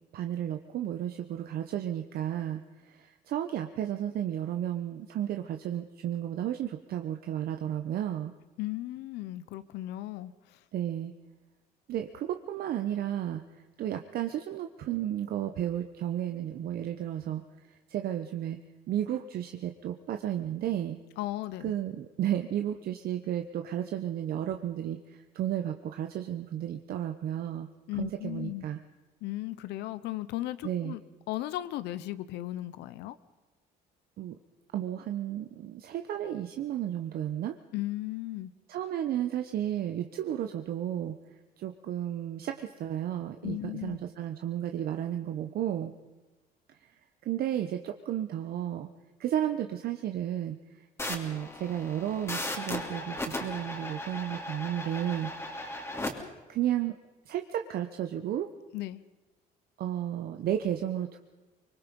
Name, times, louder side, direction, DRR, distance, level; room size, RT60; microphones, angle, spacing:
voice 1, 0.1-8.3 10.7-11.1 11.9-18.6 18.9-21.0 21.6-27.7 28.0-28.8 30.6-31.0 34.2-34.4 34.7-37.6 38.7-45.9 46.7-48.9 49.2-55.9 56.5-57.0 57.3-58.5 59.8-61.2, right 11 dB, 65° right, 6 dB, 1.0 m, -33 dB
voice 2, 8.6-10.6 21.2-21.7 27.9-28.7 29.2-31.0 31.3-33.2 37.7-38.5 43.4-44.0 58.7-59.0, left 16 dB, 85° left, 15 dB, 0.8 m, -36 dB
sound 1, 51.0-56.1, left 1 dB, 15° left, 2.8 m, -37 dB
24.5 x 21.0 x 5.3 m, 1.2 s
cardioid pair, 110°, 17 cm